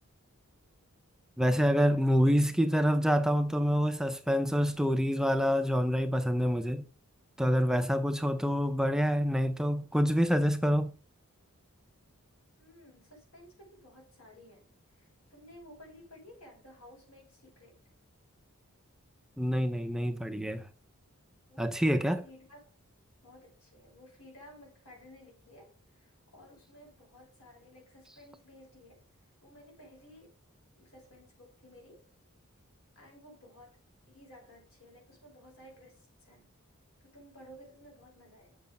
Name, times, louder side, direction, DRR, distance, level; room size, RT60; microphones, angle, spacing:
voice 1, 1.4-6.8 7.4-10.9 19.4-20.7 21.6-22.2, equal, 5° right, 0.5 m, -27 dB
voice 2, 12.6-17.8 21.5-22.8 23.2-29.1 29.4-30.4 30.7-32.0 33.0-33.8 34.1-36.5 37.0-38.6, left 1 dB, 75° left, 5.9 m, -55 dB
7.5 x 6.8 x 5.3 m
head